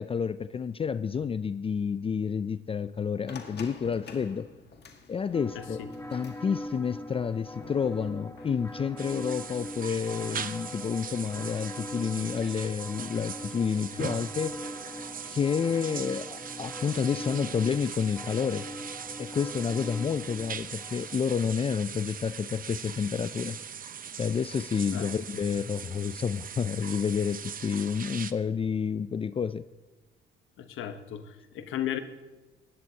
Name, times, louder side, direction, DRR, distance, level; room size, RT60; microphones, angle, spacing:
voice 1, 0.0-4.5 5.1-14.6 15.2-18.7 19.2-23.6 24.2-29.6, left 6 dB, 30° left, 14 dB, 0.4 m, -30 dB
sound 1, 3.3-11.4, left 5 dB, 55° left, 1.8 m, -50 dB
sound 2, 5.3-21.3, left 1 dB, 15° left, 1.4 m, -42 dB
sound 3, 9.0-28.3, right 7 dB, 45° right, 0.8 m, -40 dB
voice 2, 30.6-32.0, left 11 dB, 85° left, 9 dB, 1.1 m, -35 dB
19.5 x 16.0 x 2.9 m, 1.2 s
cardioid pair, 90°, 20 cm